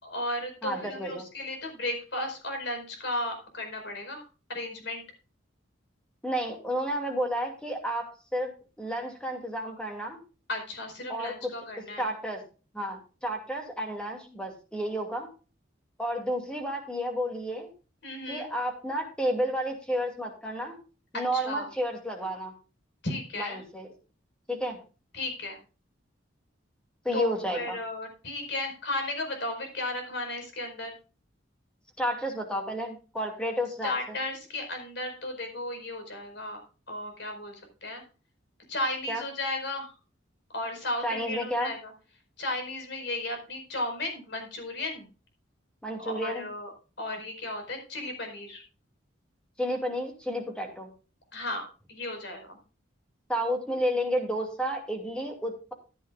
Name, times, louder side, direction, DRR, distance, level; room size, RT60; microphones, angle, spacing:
voice 1, 0.0-4.2 4.5-5.0 10.5-12.1 18.0-18.5 21.1-21.7 23.0-23.6 25.1-25.6 27.1-30.9 33.8-36.6 36.9-38.0 38.7-39.9 40.5-41.9 42.4-45.1 46.0-46.7 47.0-48.6 51.3-52.6, left 1 dB, 60° left, 4 dB, 4.9 m, -34 dB
voice 2, 0.6-1.2 6.2-10.2 11.1-11.5 12.0-12.4 12.7-15.3 16.0-17.7 18.3-20.8 21.1-22.5 23.4-23.9 24.5-24.8 27.0-27.8 32.0-33.9 39.1-39.2 41.0-41.7 45.8-46.5 49.6-50.9 53.3-55.7, equal, 5° left, 3 dB, 2.5 m, -31 dB
14.5 x 10.0 x 2.4 m, 0.34 s
head